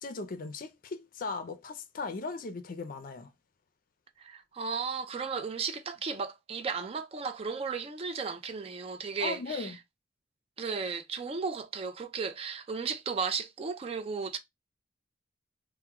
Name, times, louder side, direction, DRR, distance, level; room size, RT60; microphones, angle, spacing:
voice 1, 0.0-3.3 9.2-9.8, left 3 dB, 50° left, 0.4 m, -37 dB
voice 2, 4.2-9.8 10.6-14.4, right 5 dB, 30° right, 0.3 m, -35 dB
3.4 x 2.1 x 2.8 m
head